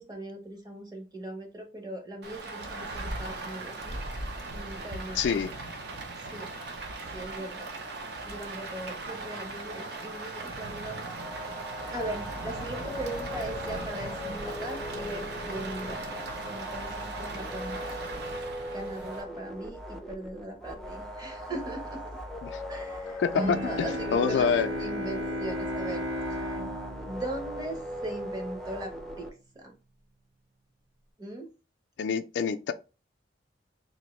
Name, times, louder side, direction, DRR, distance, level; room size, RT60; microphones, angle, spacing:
voice 1, 0.0-4.0 4.5-5.2 6.3-6.5 7.1-7.7 8.3-11.0 11.9-18.0 18.7-22.0 22.7-24.5 24.8-26.1 27.1-29.3 29.5-29.7 31.2-31.5, right 1 dB, 20° right, 0.8 m, -39 dB
Rain, 2.2-19.2, right 2 dB, 60° right, 0.6 m, -38 dB
voice 2, 5.1-5.5 22.4-22.6 23.2-23.9 24.1-24.7 32.0-32.7, left 6 dB, 70° left, 0.3 m, -26 dB
sound 1, 11.0-29.3, equal, 5° left, 0.4 m, -39 dB
Bowed string instrument, 23.3-28.5, equal, 75° right, 1.2 m, -34 dB
3.5 x 2.5 x 3.0 m
head